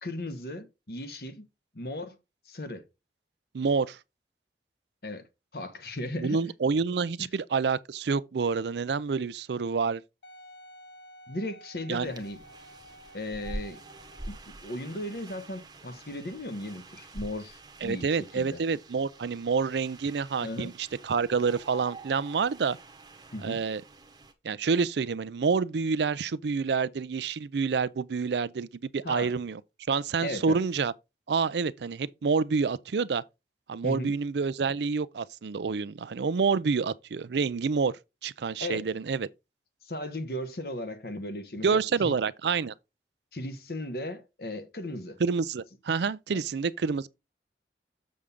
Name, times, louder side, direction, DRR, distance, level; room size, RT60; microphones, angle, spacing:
voice 1, 0.0-1.5 1.7-2.2 2.5-2.8 5.0-5.3 5.5-6.4 7.2-7.3 11.3-12.4 13.1-13.8 14.3-18.6 20.4-20.7 23.3-23.6 29.0-29.3 30.2-30.6 33.8-34.1 38.6-38.9 39.9-42.1 43.3-45.2 46.3-46.4, left 1 dB, 60° left, 1.2 m, -36 dB
voice 2, 3.5-4.0 6.2-10.0 11.9-12.1 17.8-22.8 23.4-23.8 24.4-29.6 29.9-30.9 31.3-33.2 33.7-37.9 38.2-39.3 41.6-42.7 45.2-47.1, right 5 dB, 75° right, 0.4 m, -28 dB
Wind instrument woodwind instrument, 10.2-14.5 15.2-15.3, equal, 80° left, 0.7 m, -52 dB
sound 1, 12.0-24.3, right 2 dB, 25° right, 1.0 m, -46 dB
7.0 x 6.4 x 3.6 m
head